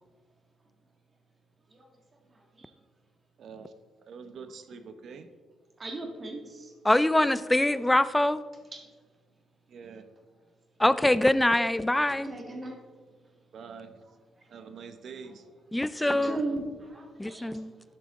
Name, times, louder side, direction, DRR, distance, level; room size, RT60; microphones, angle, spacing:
voice 1, 3.4-3.7 4.0-5.3 9.7-10.1 13.5-14.0 14.5-15.5 16.0-16.4, right 5 dB, 60° right, 9 dB, 0.8 m, -45 dB
voice 2, 5.8-6.7 8.7-8.8 12.1-12.8 16.0-17.5, right 2 dB, 30° right, 3 dB, 1.7 m, -37 dB
voice 3, 6.8-8.4 10.8-12.3 15.7-16.4 17.2-17.7, left 1 dB, 10° left, 15 dB, 0.4 m, -24 dB
11.5 x 5.8 x 3.7 m, 1.4 s
cardioid pair, 90°, 0 cm